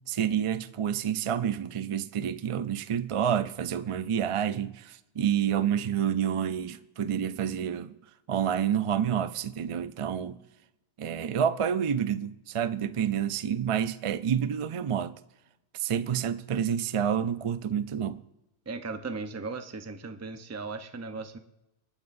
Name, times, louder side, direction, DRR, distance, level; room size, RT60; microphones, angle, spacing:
voice 1, 0.1-7.9 8.3-10.4 11.0-15.2 15.7-18.2, right 8 dB, 55° right, 0.3 m, -28 dB
voice 2, 18.7-21.4, right 4 dB, 15° right, 0.6 m, -37 dB
27.0 x 9.5 x 2.6 m
omnidirectional pair, 1.2 m